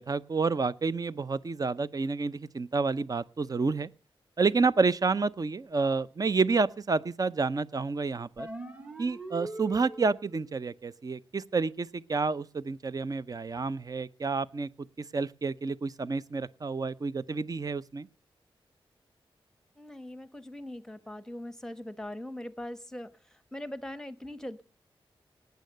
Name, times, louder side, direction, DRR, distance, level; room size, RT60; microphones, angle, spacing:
voice 1, 0.0-3.9 4.4-8.5 9.0-14.7 15.0-18.1, right 4 dB, 40° right, 17 dB, 0.6 m, -29 dB
sound 1, 8.4-10.3, right 1 dB, 15° right, 1.9 m, -41 dB
voice 2, 19.8-23.1 23.5-24.6, left 1 dB, 5° left, 14 dB, 1.2 m, -41 dB
18.5 x 9.3 x 6.6 m, 0.38 s
wide cardioid pair, 100°, 9 cm